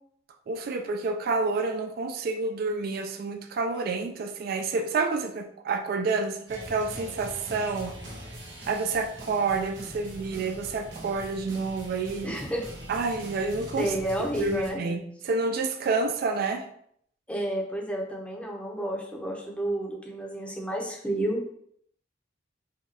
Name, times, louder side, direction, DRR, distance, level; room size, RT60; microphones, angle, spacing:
voice 1, 0.5-7.9 8.7-12.3 12.9-13.9 14.4-16.6, right 4 dB, 55° right, 5 dB, 0.3 m, -29 dB
sound 1, 6.5-14.7, right 1 dB, 80° right, 1.1 m, -42 dB
voice 2, 12.2-12.6 13.8-14.8 17.3-21.6, right 1 dB, 5° left, 0 dB, 0.6 m, -30 dB
4.9 x 2.3 x 2.8 m, 0.68 s
head